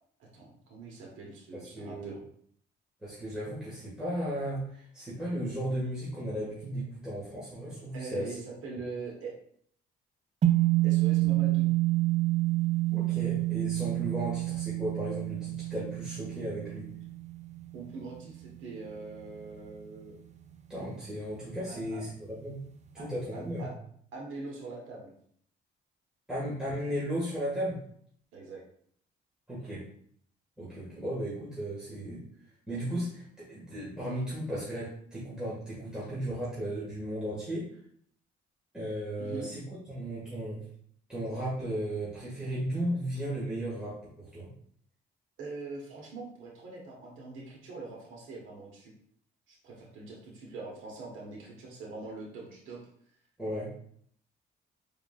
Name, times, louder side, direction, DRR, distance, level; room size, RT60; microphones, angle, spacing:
voice 1, 0.2-2.2 7.9-9.3 10.8-11.7 17.7-20.1 21.7-22.0 23.0-23.7 24.1-25.1 28.3-28.6 39.2-39.5 45.4-48.9 49.5-52.8, right 3 dB, 85° right, -3 dB, 1.2 m, -43 dB
voice 2, 1.5-2.2 3.0-8.3 12.9-16.9 20.7-22.6 22.9-23.7 26.3-27.8 29.5-29.8 30.6-32.2 32.7-37.7 38.7-39.6 39.9-40.6 41.1-44.5 53.4-53.7, right 1 dB, 5° right, -9 dB, 1.7 m, -35 dB
sound 1, 10.4-18.9, right 17 dB, 35° right, 0.5 m, -28 dB
4.7 x 3.5 x 2.4 m, 0.63 s
cardioid pair, 90°, 20 cm